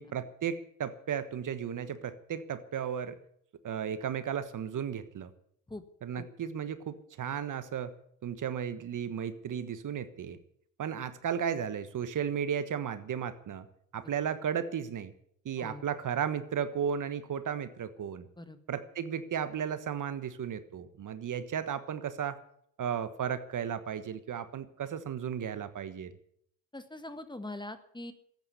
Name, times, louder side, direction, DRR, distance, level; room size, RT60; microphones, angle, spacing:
voice 1, 0.0-3.2 3.6-5.3 6.0-7.9 8.2-10.4 10.8-13.7 13.9-15.1 15.4-18.3 18.7-22.4 22.8-26.1, right 8 dB, 45° right, 13 dB, 1.4 m, -34 dB
voice 2, 26.7-28.1, left 2 dB, 10° left, 10 dB, 1.7 m, -42 dB
14.0 x 9.3 x 9.6 m, 0.67 s
supercardioid pair, 75°, 43 cm